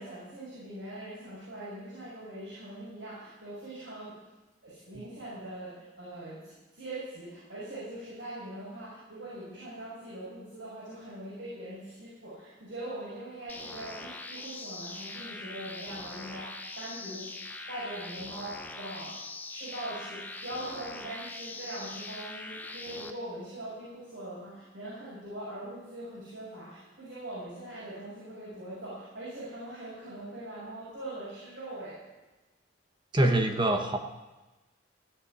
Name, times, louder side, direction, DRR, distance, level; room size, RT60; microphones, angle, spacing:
voice 1, 0.0-4.2 4.6-17.3 17.7-19.2 19.5-32.0, right 1 dB, 75° right, -9 dB, 6.1 m, -42 dB
sound 1, 13.5-23.1, left 2 dB, 10° left, 0.7 m, -42 dB
voice 2, 33.1-34.0, right 1 dB, 25° right, 5 dB, 1.1 m, -25 dB
15.5 x 6.8 x 9.8 m, 1.1 s
head